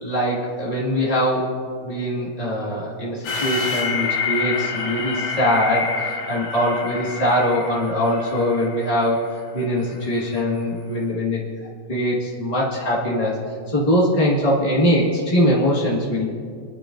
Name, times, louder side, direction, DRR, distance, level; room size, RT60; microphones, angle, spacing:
voice 1, 0.0-1.5 1.8-9.3 9.5-11.4 11.9-13.4 13.7-16.3, equal, 25° left, -6 dB, 1.0 m, -22 dB
sound 1, 3.2-10.2, left 5 dB, 75° left, 2.8 m, -28 dB
27.5 x 10.0 x 2.5 m, 2.1 s
omnidirectional pair, 3.5 m